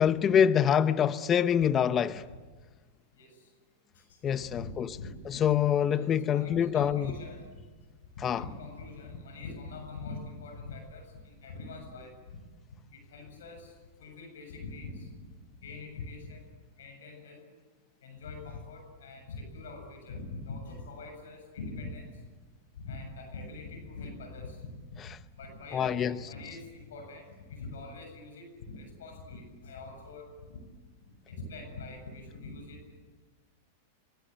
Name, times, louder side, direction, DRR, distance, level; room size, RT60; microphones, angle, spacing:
voice 1, 0.0-2.2 4.2-4.9 5.3-7.0 8.2-8.4 25.7-26.2, left 8 dB, 30° left, 0.8 m, -25 dB
voice 2, 2.0-2.4 3.1-3.5 3.9-5.6 5.9-7.6 8.1-12.4 12.7-13.7 14.0-15.1 15.6-16.4 16.8-17.4 18.0-22.1 22.8-25.0 25.4-30.6 31.3-32.8, left 3 dB, 75° left, 7.5 m, -43 dB
24.0 x 23.5 x 9.2 m
hypercardioid pair, 110°, 0 cm